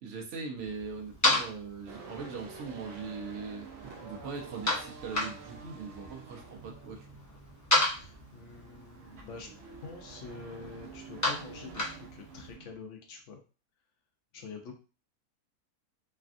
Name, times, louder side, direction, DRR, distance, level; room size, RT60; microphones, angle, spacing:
voice 1, 0.0-3.7 4.0-7.0, right 5 dB, 60° right, 0 dB, 0.9 m, -40 dB
sound 1, 0.6-12.5, left 2 dB, 25° left, 0.4 m, -35 dB
sound 2, 1.9-12.8, right 5 dB, 85° right, 0.5 m, -49 dB
voice 2, 7.8-9.5 9.8-13.4 14.3-14.8, left 4 dB, 60° left, 3 dB, 0.8 m, -46 dB
3.3 x 2.3 x 2.5 m, 0.35 s
omnidirectional pair, 1.7 m